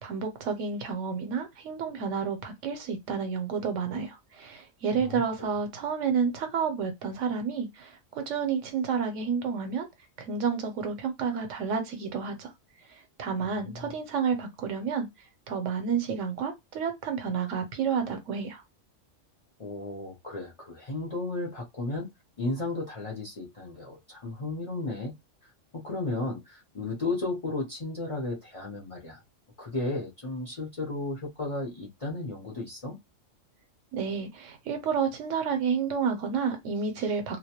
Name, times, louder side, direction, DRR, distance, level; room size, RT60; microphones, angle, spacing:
voice 1, 0.0-9.9 10.2-12.5 13.2-15.1 15.5-18.6 33.9-37.4, right 6 dB, 80° right, 0.9 m, -30 dB
voice 2, 5.0-5.5 13.4-13.9 19.6-22.1 22.4-25.1 25.7-29.2 29.6-33.0, left 2 dB, 40° left, 0.5 m, -34 dB
2.2 x 2.1 x 2.8 m
omnidirectional pair, 1.3 m